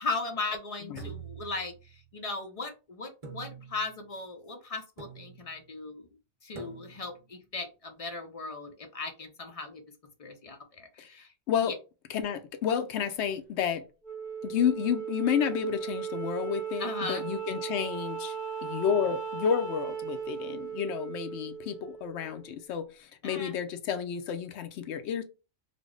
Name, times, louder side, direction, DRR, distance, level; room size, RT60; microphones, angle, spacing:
voice 1, 0.0-1.7 2.1-6.1 6.4-9.8 10.2-11.3 11.6-11.7 16.8-17.3 23.2-23.6, left 3 dB, 50° left, 0.4 m, -37 dB
voice 2, 0.9-1.2 11.0-11.1 11.5-11.7 12.1-13.8 14.4-18.3 18.6-25.2, left 8 dB, 70° left, 0.8 m, -31 dB
sound 1, 0.9-2.2 3.2-4.0 5.0-5.6 6.6-7.2, right 6 dB, 30° right, 0.9 m, -45 dB
Wind instrument woodwind instrument, 14.0-22.6, right 8 dB, 55° right, 1.2 m, -37 dB
3.3 x 2.0 x 3.6 m
omnidirectional pair, 1.3 m